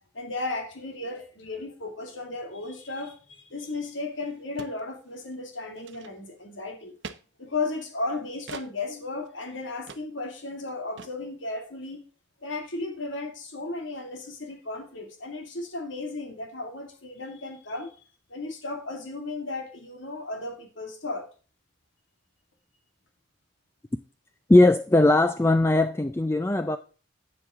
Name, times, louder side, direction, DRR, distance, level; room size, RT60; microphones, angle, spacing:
voice 1, 0.1-6.9 7.4-12.0 12.4-18.0 18.3-21.3, left 3 dB, 85° left, 2.1 m, -35 dB
sound 1, 3.8-3.9 4.1-4.2 4.6-4.8 5.1-5.3 5.8-6.4 7.0-7.2 8.5-8.7 9.2-9.3 9.9-10.0 10.3-10.4 10.6-10.7 11.0-11.1, right 5 dB, 70° right, 0.7 m, -42 dB
voice 2, 24.5-26.8, left 2 dB, 15° left, 0.3 m, -19 dB
8.8 x 7.6 x 3.6 m
head